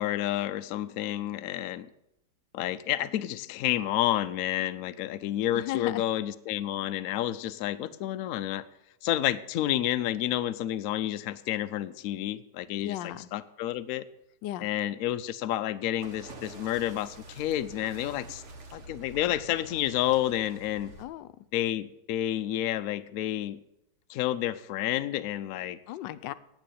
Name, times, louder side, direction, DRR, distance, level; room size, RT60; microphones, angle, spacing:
voice 1, 0.0-1.9 2.5-8.7 9.0-14.0 14.6-18.4 18.7-20.9 21.5-23.6 24.1-25.8, left 13 dB, 70° left, 12 dB, 0.8 m, -30 dB
voice 2, 5.5-6.0 12.8-13.3 14.4-14.7 21.0-21.3 25.9-26.3, left 14 dB, 90° left, 14 dB, 1.3 m, -35 dB
sound 1, 16.0-21.0, right 2 dB, 45° right, 1.5 m, -47 dB
9.1 x 8.2 x 8.5 m, 0.84 s
omnidirectional pair, 1.9 m